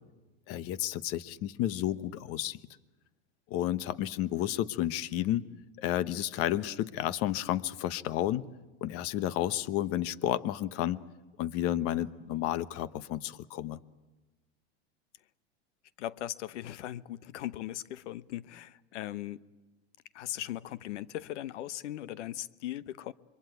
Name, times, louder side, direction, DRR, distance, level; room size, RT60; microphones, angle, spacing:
voice 1, 0.5-2.6 3.5-5.4 5.8-8.4 8.8-11.0 11.4-13.8, left 13 dB, 40° left, 1.1 m, -31 dB
voice 2, 16.0-19.4 20.1-23.1, left 13 dB, 80° left, 1.0 m, -39 dB
26.5 x 23.0 x 9.3 m
supercardioid pair, 135°, 35 cm